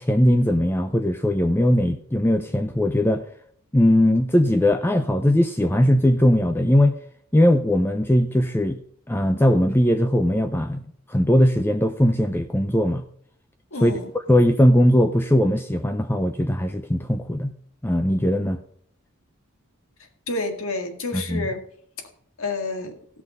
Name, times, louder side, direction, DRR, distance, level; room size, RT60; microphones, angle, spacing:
voice 1, 0.0-3.2 3.7-7.0 7.3-8.8 9.1-10.8 11.1-13.0 13.8-13.9 14.3-17.5 17.8-18.6 21.1-21.5, equal, 10° left, 0.5 m, -19 dB
voice 2, 13.7-14.1 20.3-21.6 22.4-23.0, left 2 dB, 70° left, 1.9 m, -29 dB
16.5 x 6.0 x 5.3 m
head